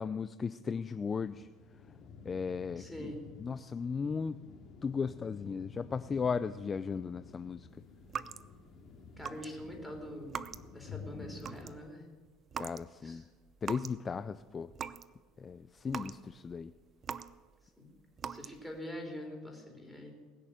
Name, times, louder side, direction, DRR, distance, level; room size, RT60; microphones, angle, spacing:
voice 1, 0.0-1.5 2.2-3.1 3.4-4.4 4.8-7.7 12.6-13.2 13.6-14.7 15.4-16.7, left 5 dB, 30° left, 13 dB, 0.5 m, -36 dB
sound 1, 1.2-11.7, left 5 dB, 50° left, 3.0 m, -51 dB
voice 2, 2.8-3.2 9.2-10.4 10.7-12.0 13.0-13.2 17.8-17.9 18.3-20.1, equal, 5° left, 1 dB, 4.4 m, -44 dB
sound 2, 8.0-8.8 9.2-9.5 9.8-10.9 11.2-11.9 12.5-12.9 13.2-14.0 14.4-15.1 15.5-17.7 18.2-18.8, right 7 dB, 35° right, 0.6 m, -42 dB
20.5 x 6.8 x 8.8 m, 1.3 s
supercardioid pair, 105°, 0 cm